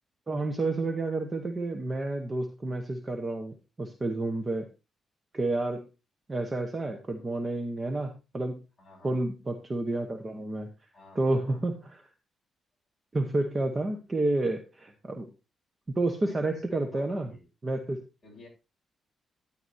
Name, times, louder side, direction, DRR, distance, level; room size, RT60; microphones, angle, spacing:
voice 1, 0.3-4.7 5.3-5.8 6.3-8.6 9.0-10.7 11.1-12.0 13.1-15.3 15.9-17.3 17.6-18.0, right 2 dB, 20° right, 5 dB, 1.0 m, -30 dB
voice 2, 8.8-9.2 10.9-11.6 16.2-17.4 18.2-18.5, left 2 dB, 10° left, -3 dB, 7.1 m, -52 dB
12.5 x 10.5 x 2.7 m, 0.29 s
wide cardioid pair, 175°, 0 cm